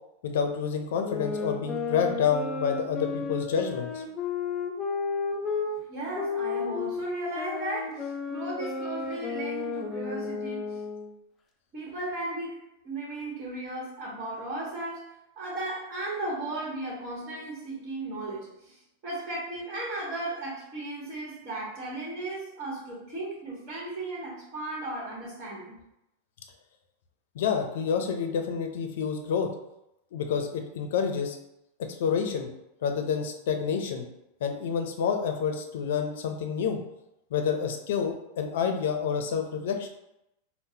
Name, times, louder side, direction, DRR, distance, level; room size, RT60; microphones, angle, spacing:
voice 1, 0.2-4.0 27.3-29.5 30.1-31.4 31.9-32.5 32.8-34.0 34.4-36.8 37.3-39.9, left 6 dB, 75° left, 5 dB, 0.5 m, -28 dB
sound 1, 1.0-5.7 6.1-11.1, left 5 dB, 20° left, 0.4 m, -32 dB
voice 2, 5.9-10.8 11.7-12.6 12.8-25.8, right 2 dB, 45° right, -6 dB, 1.2 m, -36 dB
3.7 x 2.1 x 2.7 m, 0.85 s
hypercardioid pair, 125°, 0 cm